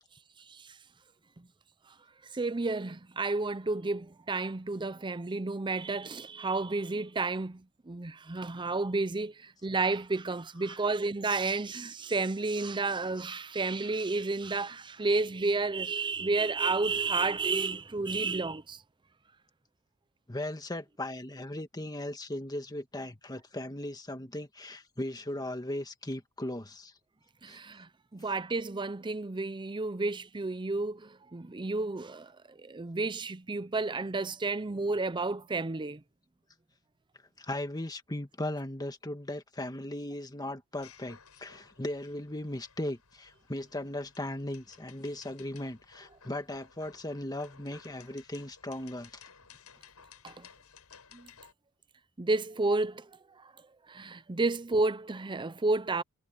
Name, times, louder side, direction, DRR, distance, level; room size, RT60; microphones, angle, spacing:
voice 1, 2.3-18.8 27.4-36.0 50.2-50.5 51.1-51.3 52.2-53.1 53.4-53.5 53.9-56.0, right 3 dB, 20° right, 0.6 m, -31 dB
voice 2, 20.3-26.9 27.5-27.6 37.4-49.2, left 1 dB, 20° left, 1.6 m, -37 dB
sound 1, 40.8-51.5, left 6 dB, 85° left, 7.4 m, -57 dB
head